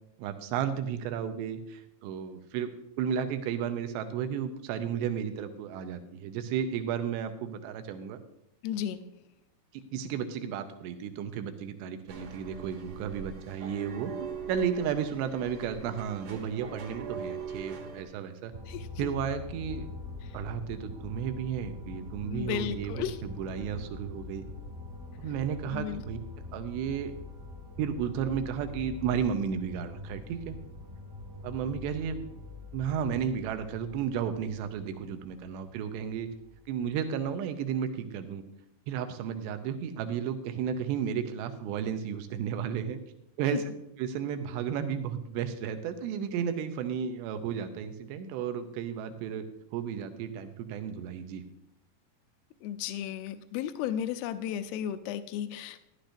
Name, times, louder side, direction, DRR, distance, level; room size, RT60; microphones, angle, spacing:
voice 1, 0.2-8.2 9.7-18.5 19.0-19.9 20.3-24.4 25.2-26.2 26.5-27.1 27.8-30.6 31.4-32.3 32.7-36.3 36.7-38.4 38.9-43.0 43.4-43.6 44.0-49.4 49.7-51.4, right 8 dB, 90° right, 9 dB, 3.0 m, -33 dB
voice 2, 8.6-9.0 18.7-18.9 22.3-23.2 25.7-26.0 43.5-43.6 52.6-55.8, left 10 dB, 80° left, 10 dB, 2.3 m, -34 dB
sound 1, 12.1-18.0, right 5 dB, 70° right, 1.7 m, -42 dB
sound 2, 18.5-37.3, left 3 dB, 25° right, 1.0 m, -44 dB
13.0 x 11.5 x 2.6 m, 0.80 s
omnidirectional pair, 4.9 m